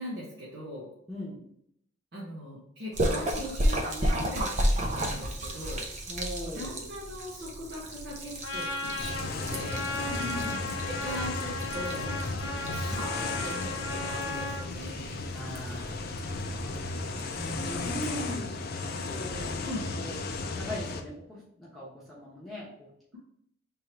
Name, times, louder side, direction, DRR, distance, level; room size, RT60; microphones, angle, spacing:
voice 1, 0.0-0.9 2.1-5.9 6.5-10.0 10.8-12.4 12.7-15.4 17.3-18.0 19.6-19.8, equal, 55° right, -7 dB, 1.0 m, -40 dB
Splash splatter, 2.9-17.9, right 1 dB, 35° right, 0.6 m, -34 dB
voice 2, 6.1-6.8 10.0-10.9 15.3-16.1 17.6-18.5 19.1-19.7 19.9-20.2 20.6-22.9, left 1 dB, ahead, -9 dB, 1.1 m, -39 dB
Trumpet, 8.4-14.6, left 2 dB, 90° left, 0.7 m, -36 dB
sound 1, 9.0-21.0, left 3 dB, 50° left, 0.5 m, -35 dB
3.7 x 3.1 x 4.4 m, 0.71 s
head